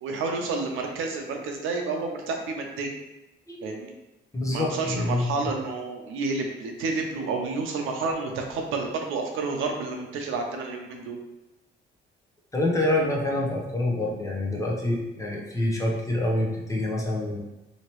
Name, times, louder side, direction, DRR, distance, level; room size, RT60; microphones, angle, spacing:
voice 1, 0.0-2.9 3.6-3.9 4.5-11.2, right 3 dB, 90° right, 2 dB, 0.6 m, -30 dB
voice 2, 4.3-5.3 12.5-17.4, left 1 dB, 15° left, -2 dB, 0.8 m, -26 dB
2.9 x 2.8 x 3.0 m, 0.97 s
cardioid pair, 90°, 20 cm